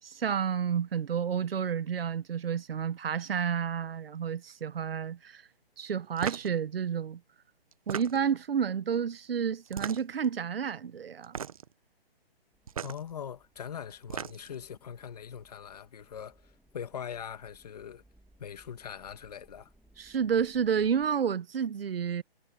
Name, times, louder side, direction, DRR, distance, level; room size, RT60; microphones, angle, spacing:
voice 1, 0.0-5.4 5.8-7.2 7.9-11.3 20.0-22.2, right 7 dB, 70° right, 1.0 m, -30 dB
sound 1, 6.2-6.5 7.7-8.4 9.7-10.3 11.2-11.7 12.7-13.0 13.9-14.6, right 8 dB, 35° right, 0.8 m, -37 dB
sound 2, 12.5-21.1, right 1 dB, ahead, 2.1 m, -64 dB
voice 2, 12.8-18.0 18.4-19.7, left 8 dB, 40° left, 1.8 m, -42 dB
hypercardioid pair, 170°, 31 cm